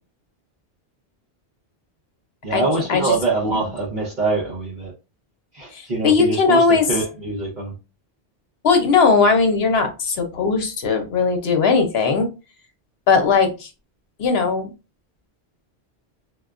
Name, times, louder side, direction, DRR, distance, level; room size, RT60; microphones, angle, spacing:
voice 1, 2.4-4.9 5.5-7.7, right 3 dB, 45° right, -6 dB, 1.1 m, -24 dB
voice 2, 5.7-6.8 8.6-12.3 13.1-13.7 14.2-14.7, left 5 dB, 70° left, 5 dB, 0.9 m, -18 dB
4.7 x 2.3 x 2.4 m, 0.29 s
omnidirectional pair, 1.1 m